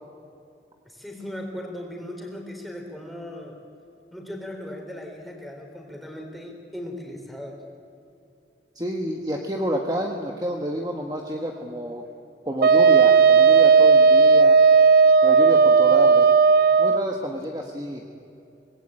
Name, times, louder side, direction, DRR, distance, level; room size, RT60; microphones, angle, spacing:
voice 1, 0.8-3.6 4.1-7.6, left 1 dB, ahead, 1 dB, 3.9 m, -37 dB
voice 2, 8.7-12.0 12.4-14.6 15.2-16.3 16.8-18.0, equal, 20° right, 2 dB, 1.5 m, -29 dB
Wind instrument woodwind instrument, 12.6-17.0, right 5 dB, 55° right, 0.5 m, -15 dB
26.0 x 19.5 x 8.8 m, 2.7 s
head